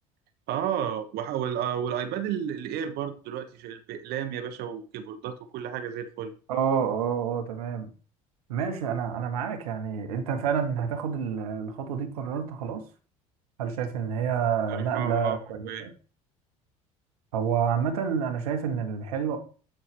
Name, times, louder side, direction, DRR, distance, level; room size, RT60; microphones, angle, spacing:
voice 1, 0.5-6.3 14.7-15.4 15.7-15.9, right 9 dB, 60° right, 1.1 m, -32 dB
voice 2, 6.5-7.9 8.5-12.8 13.6-15.9 17.3-19.4, right 7 dB, 85° right, 1.7 m, -28 dB
11.5 x 4.6 x 3.4 m
hypercardioid pair, 70°, 18 cm